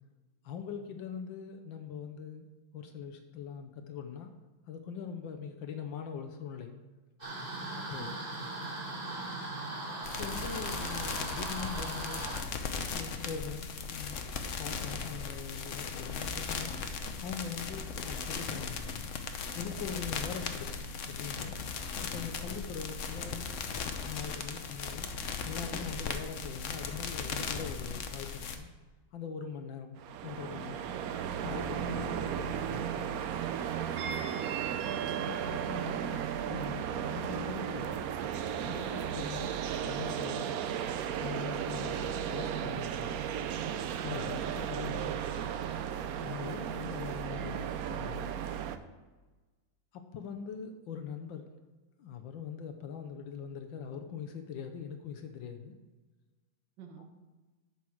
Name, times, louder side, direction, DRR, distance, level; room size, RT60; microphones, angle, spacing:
voice 1, 0.4-2.5 2.7-4.3 4.7-6.7 7.7-8.2 10.2-12.3 12.9-14.2 14.6-19.1 19.5-21.6 22.1-23.5 24.1-25.1 25.4-28.7 29.1-30.0 30.2-30.9 31.4-33.1 35.1-38.0 38.7-40.5 41.2-43.2 44.0-45.2 46.2-48.3 49.9-51.5 52.0-55.8 57.0-57.1, left 7 dB, 75° left, 6 dB, 1.5 m, -42 dB
sound 1, 7.2-12.4, right 2 dB, 25° right, 2.4 m, -39 dB
voice 2, 7.7-8.2 34.0-34.6 46.4-46.6 47.3-47.6 56.8-57.0, right 5 dB, 65° right, 2 dB, 1.8 m, -48 dB
sound 2, 10.0-28.6, left 5 dB, 60° left, 0.8 m, -38 dB
sound 3, 30.0-48.8, right 8 dB, 80° right, 0.8 m, -35 dB
11.0 x 7.1 x 4.6 m, 1.2 s
omnidirectional pair, 2.2 m